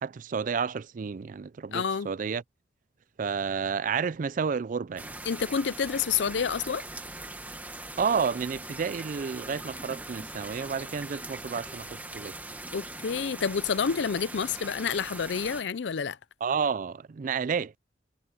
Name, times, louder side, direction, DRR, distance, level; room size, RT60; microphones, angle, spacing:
voice 1, 0.0-2.4 3.2-5.1 8.0-12.3 16.4-17.8, right 6 dB, 45° right, 0.4 m, -30 dB
voice 2, 1.7-2.1 5.3-6.8 12.7-16.2, left 6 dB, 75° left, 0.5 m, -28 dB
sound 1, 5.0-15.6, right 2 dB, 10° right, 1.4 m, -41 dB
head